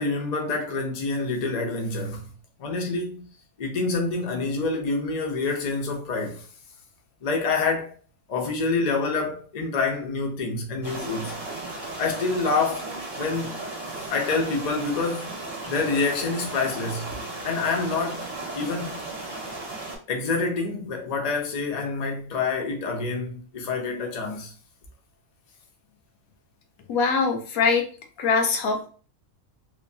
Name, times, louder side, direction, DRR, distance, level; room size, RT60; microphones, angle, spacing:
voice 1, 0.0-2.2 2.6-3.2 3.6-6.4 7.2-7.9 8.3-11.3 12.0-13.7 14.1-15.3 15.7-17.1 17.4-18.2 18.5-18.9 20.1-24.5, left 3 dB, 60° left, 0.4 m, -27 dB
sound 1, 10.8-20.0, right 2 dB, 40° right, 0.9 m, -35 dB
voice 2, 26.9-27.9 28.2-28.9, left 5 dB, 80° left, 1.1 m, -22 dB
2.9 x 2.1 x 2.6 m
omnidirectional pair, 1.5 m